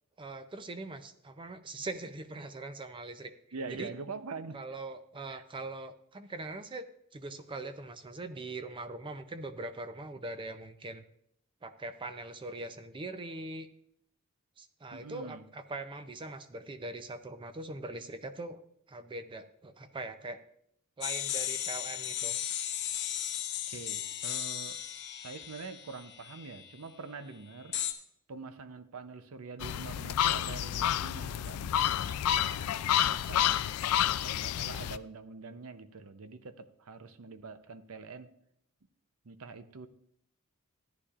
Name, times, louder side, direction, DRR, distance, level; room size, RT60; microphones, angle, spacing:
voice 1, 0.2-3.3 3.7-3.9 4.5-11.0 11.6-13.7 14.6-18.6 18.9-20.4 21.0-22.4, right 2 dB, 25° right, 10 dB, 0.5 m, -42 dB
voice 2, 3.5-4.6 5.3-5.4 14.9-15.4 23.7-24.8 25.2-27.8 28.3-33.7 34.2-38.3 39.2-39.9, right 4 dB, 75° right, 11 dB, 0.7 m, -45 dB
sound 1, 21.0-26.7 27.7-27.9, left 11 dB, 50° left, 0.8 m, -36 dB
sound 2, 29.6-35.0, left 11 dB, 85° left, 0.3 m, -29 dB
13.5 x 9.9 x 2.4 m, 0.71 s
head